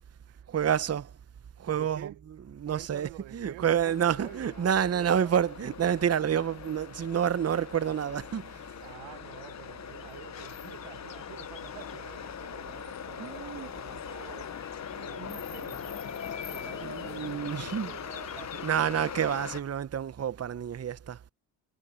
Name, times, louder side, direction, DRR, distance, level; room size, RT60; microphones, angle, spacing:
voice 1, 0.5-1.1 1.6-8.6 13.2-13.7 15.2-15.4 16.8-18.0 18.6-21.2, right 9 dB, 30° right, 0.9 m, -29 dB
voice 2, 1.7-2.2 2.7-5.3 8.8-14.6 14.9-19.0, right 17 dB, 75° right, 1.1 m, -48 dB
sound 1, 3.9-19.6, left 8 dB, 35° left, 0.9 m, -41 dB
sound 2, 8.2-18.9, left 11 dB, 65° left, 3.9 m, -55 dB
supercardioid pair, 60°, 47 cm